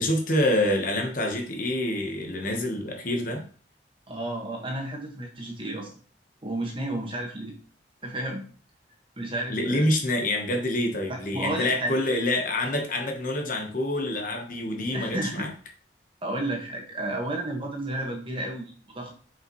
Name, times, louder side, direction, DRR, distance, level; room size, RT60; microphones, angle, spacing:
voice 1, 0.0-3.5 9.5-15.5, left 1 dB, 50° left, 3 dB, 1.2 m, -26 dB
voice 2, 4.1-5.9 6.4-7.5 8.0-8.4 9.2-9.9 11.1-11.9 14.9-15.5 16.2-19.1, right 1 dB, 30° right, 0 dB, 1.6 m, -32 dB
6.1 x 5.2 x 3.1 m, 0.41 s
head